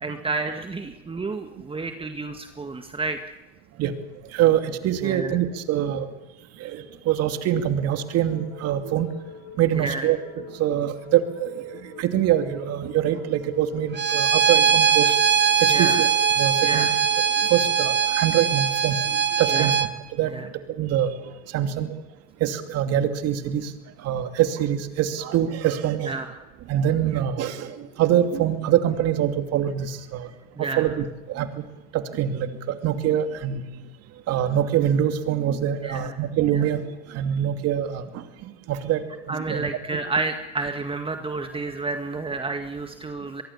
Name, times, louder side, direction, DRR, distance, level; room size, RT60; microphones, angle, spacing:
voice 1, 0.0-3.4 5.0-5.4 9.7-10.1 15.7-16.0 16.6-17.0 19.5-19.7 20.3-20.5 26.0-26.4 30.6-30.9 35.8-36.1 36.5-36.6 39.3-43.4, right 3 dB, 15° right, 6 dB, 1.9 m, -30 dB
voice 2, 4.3-6.1 6.6-9.1 9.6-10.2 10.5-15.2 15.6-16.1 16.4-16.9 17.5-19.0 19.4-20.3 20.8-21.9 22.4-23.7 24.0-26.1 26.7-30.3 30.6-31.6 31.9-33.6 34.3-36.8 37.1-39.7, right 10 dB, 50° right, 8 dB, 2.7 m, -24 dB
sound 1, 7.8-17.8, left 7 dB, 65° left, 4.6 m, -44 dB
Bowed string instrument, 13.9-19.9, right 7 dB, 35° right, 1.9 m, -21 dB
23.0 x 23.0 x 7.2 m, 1.1 s
hypercardioid pair, 85°, 31 cm